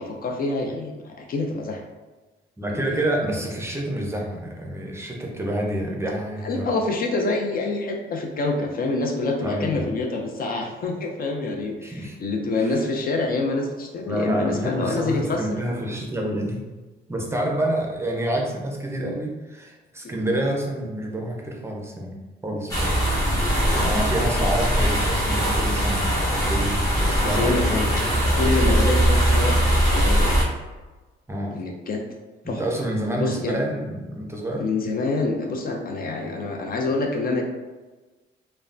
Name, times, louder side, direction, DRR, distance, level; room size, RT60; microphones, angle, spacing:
voice 1, 0.0-1.8 2.7-3.2 6.4-15.6 20.0-20.2 23.4-24.1 27.0-28.0 28.3-30.4 31.5-32.1 32.5-32.8 33.2-33.6 34.6-37.4, left 3 dB, 50° left, 2 dB, 0.4 m, -27 dB
voice 2, 2.6-6.7 9.4-9.9 11.8-12.1 12.6-12.7 14.1-16.6 17.1-22.1 22.4-23.1 23.7-28.1 28.3-28.7 31.3-31.6 32.6-34.6, right 1 dB, 15° right, -1 dB, 0.6 m, -28 dB
sound 1, 22.7-30.4, equal, 15° left, 1.0 m, -21 dB
3.1 x 2.1 x 2.5 m, 1.2 s
cardioid pair, 90°, 20 cm